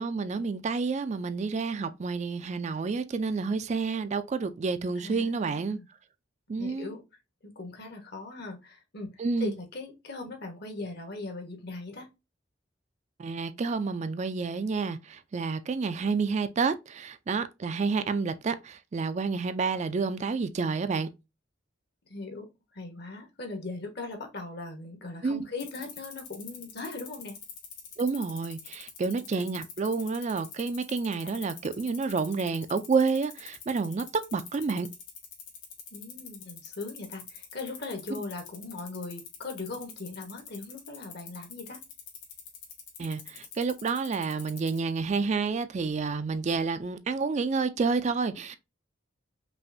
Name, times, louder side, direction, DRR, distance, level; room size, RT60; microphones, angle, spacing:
voice 1, 0.0-5.8 6.5-6.9 9.2-9.5 13.2-21.1 25.2-25.4 28.0-34.1 34.3-34.9 43.0-48.6, right 4 dB, 35° right, 0.4 m, -29 dB
voice 2, 5.0-5.9 6.6-7.0 7.4-12.1 18.0-18.1 22.1-22.5 22.7-27.4 31.6-31.7 35.9-41.8, left 3 dB, 60° left, 1.3 m, -39 dB
sound 1, 25.6-44.8, left 8 dB, 85° left, 1.7 m, -44 dB
5.4 x 2.5 x 2.6 m
head